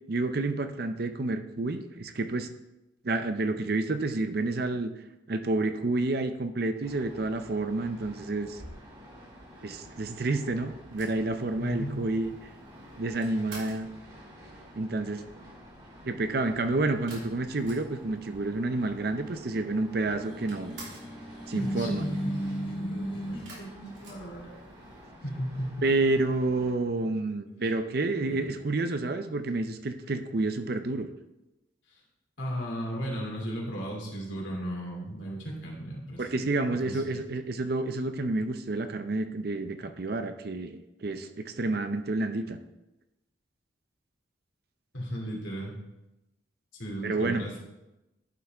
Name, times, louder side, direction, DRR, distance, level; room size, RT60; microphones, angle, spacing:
voice 1, 0.1-2.5 3.0-4.9 5.3-8.6 9.6-12.3 13.0-13.9 14.8-15.2 16.1-20.8 21.5-22.0 25.8-31.1 36.2-40.7 41.0-42.6 47.0-47.4, right 2 dB, 50° right, 8 dB, 0.5 m, -29 dB
sound 1, 6.8-26.7, equal, 25° right, 2.3 m, -50 dB
sound 2, 10.9-13.9 17.1-18.2 18.5-18.6 18.8-19.6 19.9-21.2 23.4-24.9, right 2 dB, 75° right, 3.1 m, -49 dB
voice 2, 11.6-12.0 21.5-24.5 25.2-25.9 27.6-27.7 28.2-28.5 32.4-37.2 44.9-45.7 46.7-47.5, equal, 70° left, -2 dB, 2.5 m, -36 dB
sound 3, 20.2-23.5, equal, 25° left, 1.4 m, -34 dB
11.5 x 5.5 x 3.5 m, 0.96 s
head